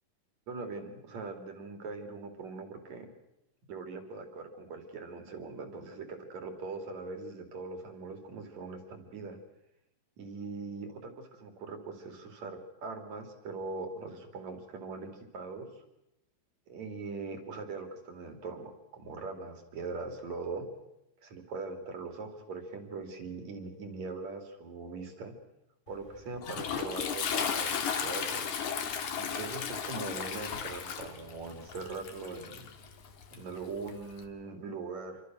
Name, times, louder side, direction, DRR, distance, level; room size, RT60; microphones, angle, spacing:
voice 1, 0.5-3.1 3.7-9.4 10.2-15.8 16.7-20.7 21.2-25.4 25.9-28.5 29.2-32.7 33.3-35.2, right 3 dB, 40° right, 6 dB, 3.7 m, -41 dB
Toilet flush, 25.9-34.2, left 7 dB, 50° left, 2.6 m, -35 dB
28.0 x 24.5 x 6.4 m, 0.87 s
omnidirectional pair, 5.7 m